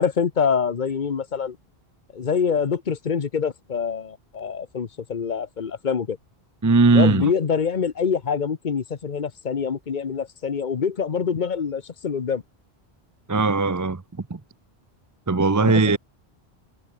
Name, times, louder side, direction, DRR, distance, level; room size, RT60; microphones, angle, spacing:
voice 1, 0.0-1.6 2.1-6.2 6.9-12.4 15.6-16.0, left 6 dB, 50° left, 1.1 m, -25 dB
voice 2, 6.6-7.3 13.3-14.4 15.3-16.0, right 3 dB, 20° right, 0.6 m, -19 dB
omnidirectional pair, 1.1 m